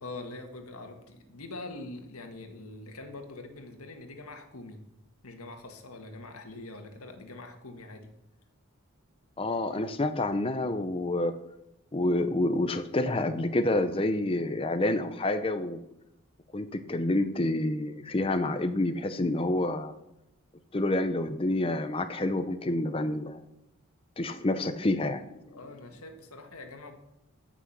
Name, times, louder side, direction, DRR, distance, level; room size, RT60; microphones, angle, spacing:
voice 1, 0.0-4.8 5.2-8.1 25.5-26.9, left 2 dB, 90° left, 5 dB, 1.8 m, -44 dB
voice 2, 9.4-11.4 11.9-15.8 16.5-19.9 20.7-23.4 24.2-25.2, left 2 dB, 25° left, 8 dB, 0.6 m, -28 dB
16.0 x 6.1 x 6.1 m, 0.86 s
head